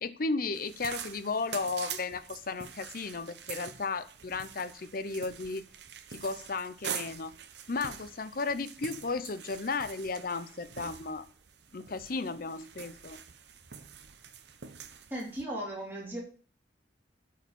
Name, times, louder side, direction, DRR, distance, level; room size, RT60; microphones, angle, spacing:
voice 1, 0.0-5.7 6.1-7.3 7.7-11.3 11.7-13.2, left 4 dB, 50° left, 0.7 m, -34 dB
sound 1, 0.5-15.4, right 8 dB, 65° right, 0.8 m, -45 dB
voice 2, 15.1-16.2, right 1 dB, 10° right, 3.9 m, -36 dB
12.5 x 4.7 x 5.4 m
head